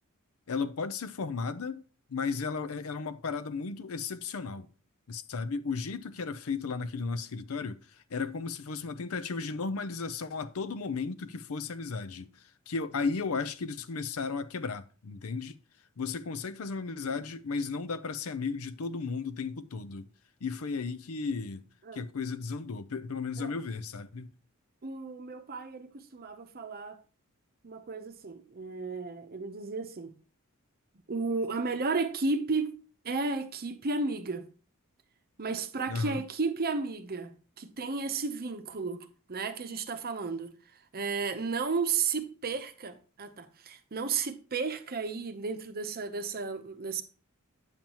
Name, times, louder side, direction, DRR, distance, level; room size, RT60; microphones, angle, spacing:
voice 1, 0.5-1.8 2.1-4.7 5.1-12.3 12.7-15.6 16.0-20.1 20.4-21.6 21.9-24.3 35.9-36.2, left 4 dB, 70° left, 0.6 m, -34 dB
voice 2, 24.8-27.0 27.6-30.1 31.1-32.7 33.0-34.5 35.4-40.5 40.9-47.0, right 4 dB, 45° right, 0.8 m, -33 dB
8.9 x 7.1 x 3.0 m
head